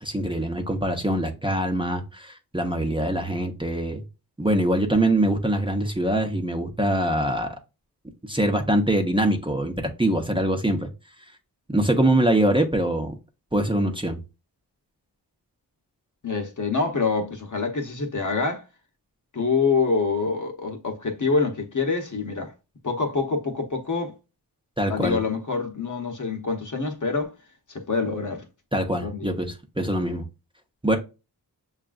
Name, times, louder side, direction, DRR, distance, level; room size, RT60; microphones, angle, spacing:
voice 1, 0.0-4.0 4.4-7.5 8.3-9.7 10.0-10.9 11.7-13.1 13.5-14.2 24.8-25.2 28.7-30.2 30.8-31.0, right 1 dB, 15° right, 0.8 m, -23 dB
voice 2, 16.2-18.6 19.3-22.5 22.8-24.1 24.9-27.3 27.7-28.5 29.0-29.3, left 4 dB, 50° left, 0.9 m, -26 dB
6.6 x 2.5 x 2.4 m
wide cardioid pair, 70°, 40 cm